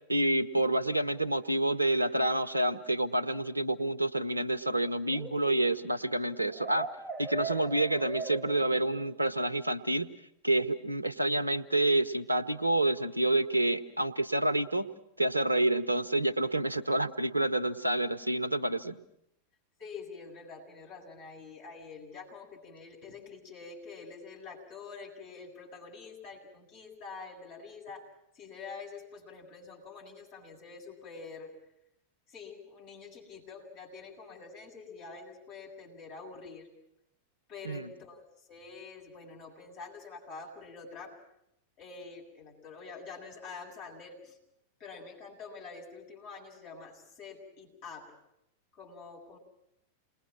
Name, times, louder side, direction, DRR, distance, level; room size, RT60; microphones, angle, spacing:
voice 1, 0.1-6.9 7.2-10.2 10.4-14.9 15.2-19.0 37.6-37.9, right 1 dB, 85° right, 14 dB, 0.9 m, -28 dB
sound 1, 5.1-9.2, right 4 dB, 10° right, 1.0 m, -40 dB
voice 2, 19.8-28.1 28.3-31.5 32.3-36.7 37.5-41.1 41.8-44.4 44.8-48.1 48.7-49.4, left 4 dB, 45° left, -1 dB, 7.8 m, -46 dB
29.0 x 21.0 x 6.0 m, 0.78 s
figure-of-eight pair, 90°, 0 cm